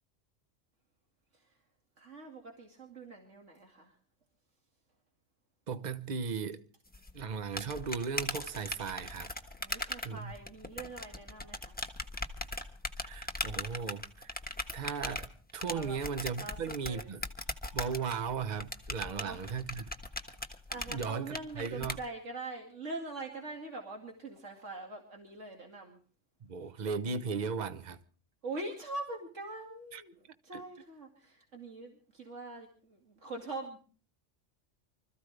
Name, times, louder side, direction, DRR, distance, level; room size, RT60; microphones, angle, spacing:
voice 1, 2.0-3.9 9.6-11.8 15.7-16.0 16.4-16.6 16.8-17.0 19.0-19.5 20.7-26.0 28.4-30.1 30.4-33.8, right 2 dB, 85° right, 2.7 m, -43 dB
voice 2, 5.7-6.6 7.1-9.3 10.0-10.3 13.0-14.3 14.7-17.2 17.7-19.9 20.9-22.0 26.4-28.0 29.9-30.0 30.5-30.6, right 5 dB, 40° right, 1.0 m, -37 dB
sound 1, 6.9-22.0, left 1 dB, 10° left, 1.3 m, -39 dB
25.5 x 14.5 x 3.4 m
omnidirectional pair, 1.2 m